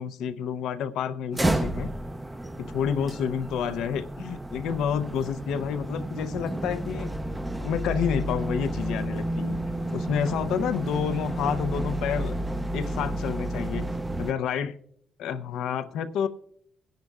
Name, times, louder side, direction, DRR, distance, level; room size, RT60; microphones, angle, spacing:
voice 1, 0.0-1.9 2.6-7.1 7.6-9.6 9.9-12.3 12.7-13.9 14.2-14.8 15.2-16.3, left 7 dB, 85° left, 11 dB, 0.6 m, -29 dB
sound 1, 1.3-14.3, right 1 dB, 10° right, 0.5 m, -31 dB
21.5 x 10.5 x 2.4 m, 0.68 s
cardioid pair, 90°, 0 cm